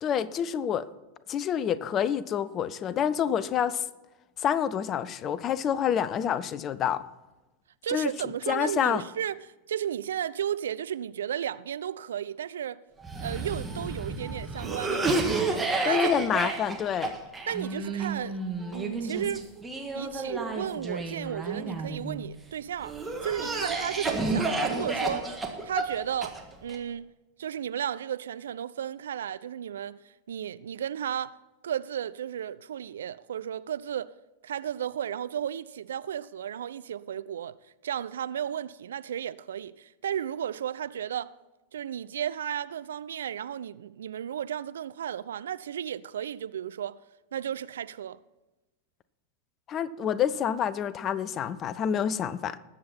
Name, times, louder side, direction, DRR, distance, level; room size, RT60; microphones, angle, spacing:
voice 1, 0.0-0.9 1.3-3.8 4.4-7.0 7.9-8.1 8.5-9.0 15.8-17.1 49.7-52.6, left 8 dB, 30° left, 0.6 m, -27 dB
voice 2, 7.8-9.4 9.7-12.8 13.2-16.1 17.5-18.4 18.7-19.5 19.9-27.1 27.4-30.0 30.3-31.4 31.6-34.1 34.4-37.6 37.8-41.3 41.7-47.0 47.3-48.2, right 9 dB, 65° right, 0.4 m, -34 dB
Cough, 13.0-22.2 22.8-26.8, right 3 dB, 10° right, 1.8 m, -31 dB
20.0 x 7.6 x 4.3 m
figure-of-eight pair, 90°, 0 cm